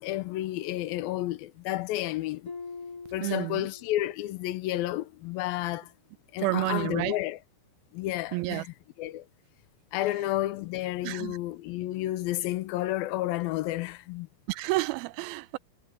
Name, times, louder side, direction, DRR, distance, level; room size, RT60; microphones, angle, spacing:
voice 1, 0.0-2.5 3.1-5.9 6.3-7.4 7.9-9.3 9.9-14.3, left 15 dB, 90° left, 2.5 m, -31 dB
Harp, 2.5-4.2 4.6-5.0 5.5-5.7, left 4 dB, 25° left, 2.9 m, -44 dB
voice 2, 3.2-3.6 6.4-7.2 8.3-8.6 11.0-11.4 14.5-15.6, right 20 dB, 90° right, 2.5 m, -30 dB
omnidirectional pair, 4.2 m